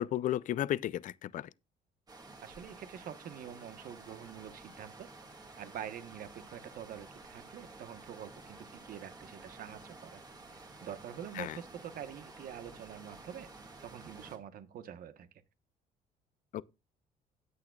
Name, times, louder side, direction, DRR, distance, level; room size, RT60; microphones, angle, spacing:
voice 1, 0.0-1.5 11.4-11.5 16.5-16.6, left 12 dB, 50° left, 0.4 m, -33 dB
sound 1, 2.1-14.4, right 3 dB, 25° right, 1.7 m, -52 dB
voice 2, 2.4-5.1 5.6-10.2 10.5-13.5 13.8-15.3, right 9 dB, 60° right, 1.1 m, -46 dB
17.5 x 6.2 x 2.3 m
cardioid pair, 110°, 17 cm